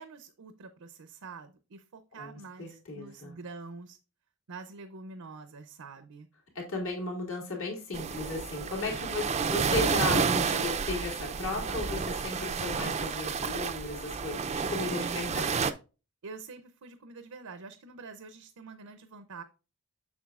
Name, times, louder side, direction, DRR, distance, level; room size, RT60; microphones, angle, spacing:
voice 1, 0.0-4.0 4.5-6.3 14.9-15.6 16.2-19.4, right 4 dB, 80° right, 10 dB, 0.6 m, -46 dB
voice 2, 2.1-3.4 6.5-15.7, left 2 dB, 65° left, 0 dB, 2.6 m, -35 dB
sound 1, 7.9-15.7, right 5 dB, 30° right, 0.4 m, -30 dB
7.2 x 6.6 x 2.4 m, 0.31 s
head